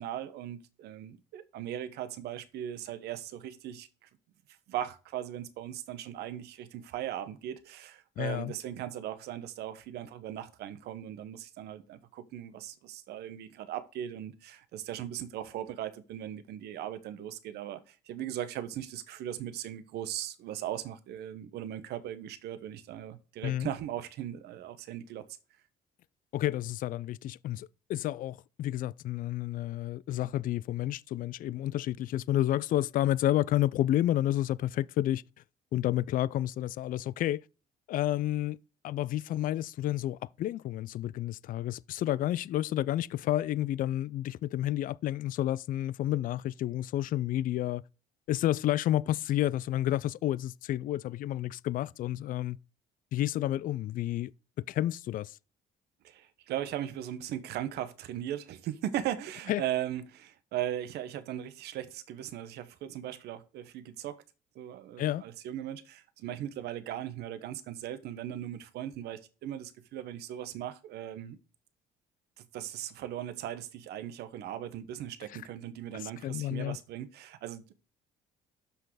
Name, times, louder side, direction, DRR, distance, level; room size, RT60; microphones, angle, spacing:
voice 1, 0.0-4.1 4.7-25.3 56.0-64.2 64.5-71.4 72.5-77.7, right 11 dB, 75° right, 1.1 m, -38 dB
voice 2, 8.2-8.5 23.4-23.7 26.3-35.2 35.7-37.4 37.9-38.6 38.8-47.8 48.3-52.6 53.1-54.3 54.6-55.4 59.5-59.6 65.0-65.2 75.3-75.4 75.9-76.8, left 13 dB, 55° left, 0.4 m, -30 dB
6.8 x 6.1 x 4.8 m
cardioid pair, 110°, 17 cm